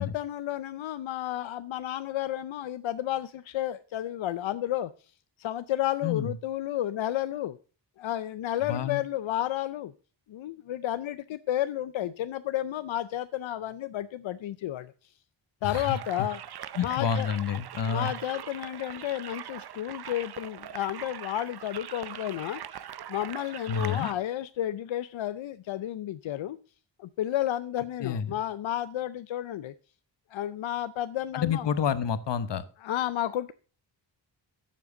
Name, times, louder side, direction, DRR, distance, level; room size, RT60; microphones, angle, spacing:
voice 1, 0.0-4.9 5.4-7.6 8.0-9.9 10.3-15.1 15.6-16.4 16.8-17.3 17.9-22.6 23.1-26.6 27.0-29.7 30.3-31.7 32.8-33.5, left 12 dB, 85° left, 12 dB, 0.6 m, -32 dB
voice 2, 6.0-6.3 8.7-9.0 15.6-16.0 16.7-18.1 23.7-24.1 28.0-28.3 31.3-32.6, left 7 dB, 65° left, 13 dB, 1.0 m, -29 dB
sound 1, 15.7-24.1, right 10 dB, 55° right, 0.7 m, -41 dB
12.0 x 7.5 x 3.8 m, 0.37 s
wide cardioid pair, 165°, 45 cm